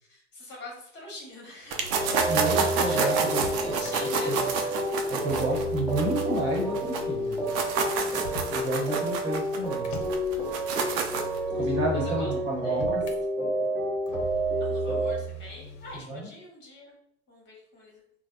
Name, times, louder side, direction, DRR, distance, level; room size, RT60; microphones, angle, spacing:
voice 1, 0.1-2.3 2.7-4.9 8.1-8.5 11.6-12.3 12.6-12.8 14.6-16.9 17.3-18.0, left 2 dB, 30° left, -2 dB, 1.2 m, -44 dB
sound 1, 1.7-7.0 7.3-11.4, right 5 dB, 50° right, 0.6 m, -29 dB
Motor vehicle (road), 1.8-3.9 5.2-8.7 9.8-13.2 14.1-16.0, right 3 dB, 55° left, 0.7 m, -39 dB
sound 2, 1.9-15.1, equal, 5° right, 0.8 m, -29 dB
voice 2, 2.3-3.9 4.3-4.4 5.1-7.4 8.5-9.9 11.5-13.0 16.1-16.3, right 1 dB, 35° right, -2 dB, 1.0 m, -31 dB
3.3 x 2.0 x 2.5 m, 0.70 s
hypercardioid pair, 85°, 35 cm